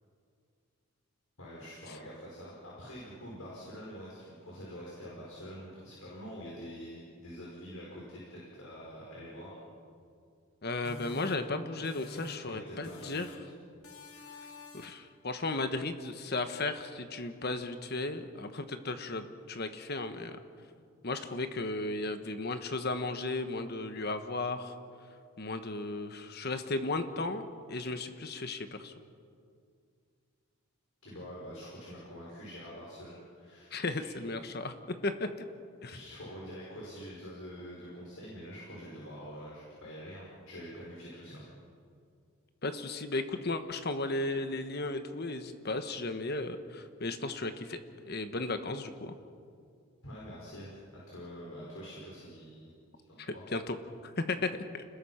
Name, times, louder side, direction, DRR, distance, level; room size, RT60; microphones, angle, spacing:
voice 1, 1.4-9.6 12.5-13.5 31.0-34.1 35.9-41.4 50.0-52.7 53.1-53.5, equal, 75° left, -5 dB, 5.6 m, -46 dB
voice 2, 10.6-13.3 14.7-20.4 21.0-24.7 25.4-28.9 33.7-35.3 35.8-36.0 42.6-47.8 48.1-49.1 53.2-53.8 54.0-54.8, left 2 dB, 50° left, 8 dB, 1.2 m, -35 dB
sound 1, 10.8-12.6 12.8-13.5 13.8-15.1, left 2 dB, 90° left, 2.3 m, -48 dB
30.0 x 20.5 x 5.8 m, 2.3 s
head